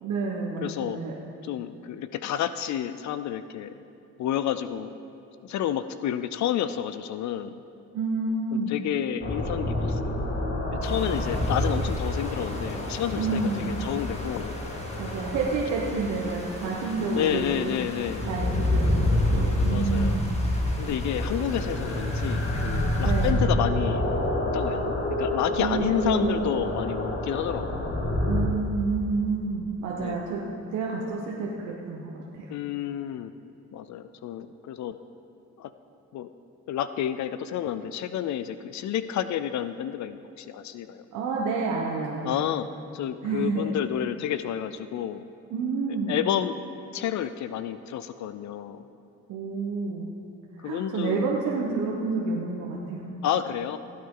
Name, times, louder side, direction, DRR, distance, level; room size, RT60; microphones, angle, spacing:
voice 1, 0.0-1.1 7.9-8.7 13.1-13.8 15.0-17.8 18.2-20.4 23.0-23.4 25.6-26.3 28.2-30.4 30.7-32.1 32.4-32.5 41.1-42.4 43.2-43.6 45.5-46.2 49.3-50.1 50.6-53.1, right 4 dB, 85° right, -3 dB, 1.2 m, -29 dB
voice 2, 0.6-1.0 1.4-3.8 4.2-4.9 5.4-7.5 8.5-10.0 10.7-14.5 17.1-18.3 19.7-20.2 20.8-24.2 24.5-27.9 30.0-30.2 32.5-33.3 33.7-35.0 35.6-35.7 36.1-36.3 36.7-41.0 42.2-42.7 42.9-45.2 45.9-46.6 46.9-48.8 50.6-51.3 53.2-53.8, left 10 dB, 70° left, 12 dB, 0.5 m, -30 dB
sound 1, 9.2-28.4, left 1 dB, 40° left, 1.9 m, -28 dB
sound 2, 10.8-23.3, left 1 dB, 20° left, 2.1 m, -42 dB
16.5 x 8.6 x 3.8 m, 2.8 s
cardioid pair, 90°, 30 cm